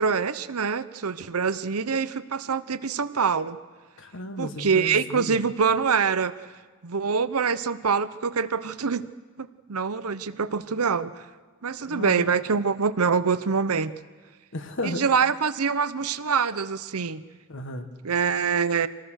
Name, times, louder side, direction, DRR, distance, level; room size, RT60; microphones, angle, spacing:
voice 1, 0.0-3.6 4.4-6.4 6.8-9.1 9.4-11.2 11.6-14.0 14.8-17.2 18.0-18.9, right 5 dB, 85° right, 13 dB, 0.9 m, -25 dB
voice 2, 4.0-5.5 11.9-12.2 14.5-15.0 17.5-17.9, left 1 dB, 60° left, 7 dB, 1.7 m, -34 dB
27.0 x 18.5 x 6.5 m, 1.4 s
head